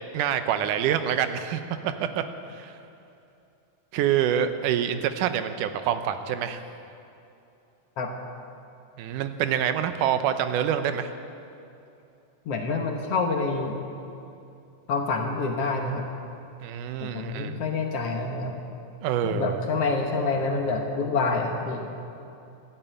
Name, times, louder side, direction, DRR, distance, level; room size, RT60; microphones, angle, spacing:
voice 1, 0.1-2.2 2.5-2.8 3.9-6.6 9.0-11.1 16.6-17.6 19.0-19.6, right 9 dB, 85° right, 9 dB, 2.3 m, -26 dB
voice 2, 12.5-13.8 14.9-16.1 17.0-18.6 19.2-21.9, left 3 dB, 60° left, 2 dB, 1.8 m, -27 dB
13.5 x 11.0 x 8.9 m, 2.7 s
omnidirectional pair, 3.6 m